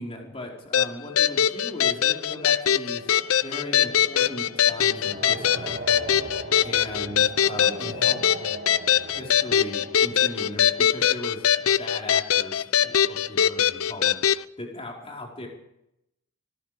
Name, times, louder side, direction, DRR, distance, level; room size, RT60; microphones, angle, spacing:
voice 1, 0.0-3.1 3.4-5.8 6.6-8.3 9.1-15.5, left 1 dB, 30° left, -1 dB, 5.1 m, -38 dB
sound 1, 0.7-14.4, left 9 dB, 80° left, 0.7 m, -22 dB
sound 2, 0.8-11.6, right 2 dB, 45° right, 2.4 m, -41 dB
25.5 x 20.5 x 5.3 m, 0.82 s
head